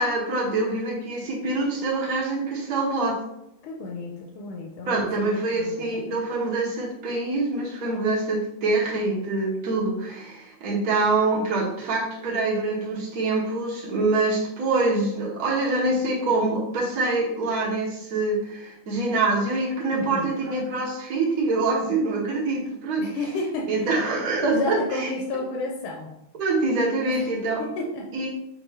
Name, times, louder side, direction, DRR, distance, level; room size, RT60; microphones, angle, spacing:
voice 1, 0.0-3.2 4.9-23.0 23.7-25.1 26.4-27.6 28.1-28.3, right 2 dB, 55° right, -5 dB, 1.2 m, -25 dB
voice 2, 3.6-6.1 19.9-20.4 23.0-24.0 24.5-26.1 27.1-28.1, left 2 dB, 80° left, 0 dB, 1.5 m, -32 dB
5.2 x 2.6 x 3.2 m, 0.83 s
omnidirectional pair, 2.3 m